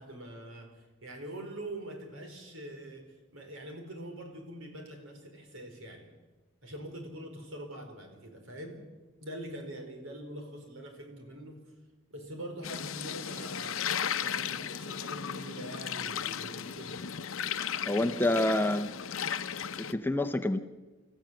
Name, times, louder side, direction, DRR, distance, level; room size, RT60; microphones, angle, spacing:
voice 1, 0.0-3.0 3.3-6.1 6.6-8.8 9.2-11.6 12.1-13.8 14.2-17.0, right 1 dB, 75° right, 4 dB, 4.9 m, -44 dB
sound 1, 12.6-19.9, left 8 dB, 75° left, 0.8 m, -35 dB
voice 2, 17.9-18.9 19.9-20.6, left 1 dB, 10° left, 8 dB, 0.7 m, -27 dB
28.5 x 14.5 x 7.7 m, 1.2 s
head